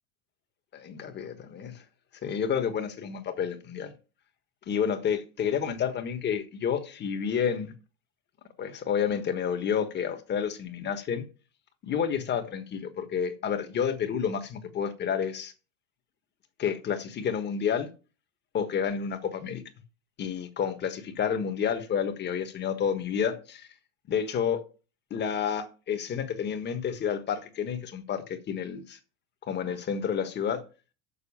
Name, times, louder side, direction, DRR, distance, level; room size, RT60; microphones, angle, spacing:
voice 1, 0.7-1.8 2.2-3.9 4.7-7.7 8.6-11.2 11.8-15.5 16.6-17.9 18.5-19.6 20.2-23.7 24.1-24.6 25.1-29.0 29.5-30.6, left 7 dB, 30° left, 1.4 m, -30 dB
6.9 x 6.2 x 7.2 m
supercardioid pair, 135°, 35 cm